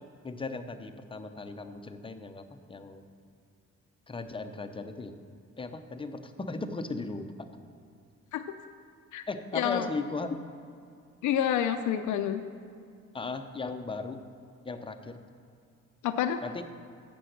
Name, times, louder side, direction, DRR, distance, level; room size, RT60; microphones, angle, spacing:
voice 1, 0.0-3.0 4.1-5.1 5.6-7.5 9.3-10.4 13.1-14.2 14.6-15.2 16.4-16.6, left 3 dB, 15° left, 7 dB, 0.6 m, -37 dB
voice 2, 9.5-9.9 11.2-12.4 16.0-16.4, left 10 dB, 75° left, 8 dB, 0.5 m, -28 dB
7.5 x 6.9 x 6.5 m, 2.4 s
cardioid pair, 90°, 30 cm